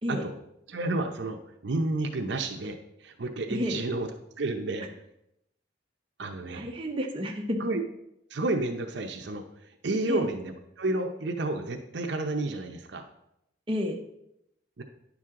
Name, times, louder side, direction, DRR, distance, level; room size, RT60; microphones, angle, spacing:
voice 1, 0.7-1.4 1.6-4.1 4.4-4.9 6.2-6.7 7.6-7.8 8.3-9.4 9.8-13.0 14.8-14.9, right 2 dB, 65° right, 4 dB, 0.7 m, -30 dB
voice 2, 3.5-3.8 6.5-7.6 10.1-10.3 13.7-14.0, equal, 25° right, 1 dB, 0.8 m, -30 dB
9.9 x 6.2 x 3.7 m, 0.81 s
head